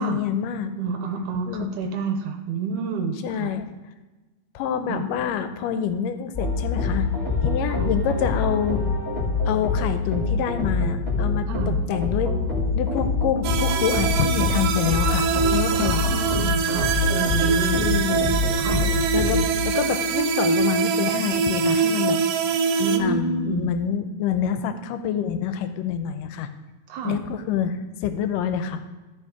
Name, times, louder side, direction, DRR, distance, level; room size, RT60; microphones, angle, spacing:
voice 1, 0.0-0.7 1.5-1.7 3.2-3.7 4.6-7.1 7.4-8.8 9.5-12.3 12.8-16.0 17.8-18.4 19.1-22.2 23.0-26.5 27.0-28.8, left 8 dB, 85° left, 9 dB, 2.2 m, -26 dB
voice 2, 0.8-3.5 4.9-5.0 7.7-7.9 11.5-11.8 15.8-17.8 18.6-18.8 22.8-23.7 26.9-27.2, right 5 dB, 75° right, 5 dB, 2.1 m, -29 dB
sound 1, 6.3-19.5, left 3 dB, 25° left, 1.8 m, -25 dB
sound 2, 13.4-23.0, right 6 dB, 90° right, 2.3 m, -24 dB
13.5 x 5.0 x 4.8 m, 1.2 s
omnidirectional pair, 3.8 m